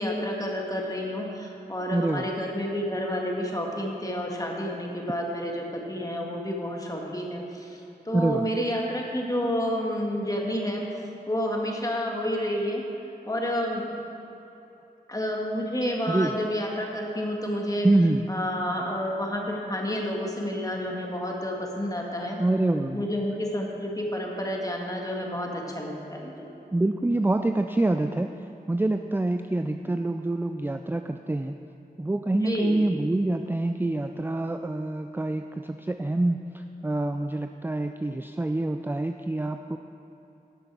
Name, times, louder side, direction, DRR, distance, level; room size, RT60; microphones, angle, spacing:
voice 1, 0.0-10.8 11.3-12.8 13.3-13.9 15.1-17.9 18.3-22.4 22.9-26.5 32.3-32.8, equal, 20° left, -1 dB, 1.8 m, -30 dB
voice 2, 1.9-2.3 8.1-8.4 16.1-16.3 17.8-18.2 22.4-23.1 26.7-28.3 28.7-31.5 32.0-39.8, right 2 dB, 10° right, 6 dB, 0.4 m, -26 dB
11.5 x 6.7 x 6.0 m, 2.9 s
wide cardioid pair, 50°, 16 cm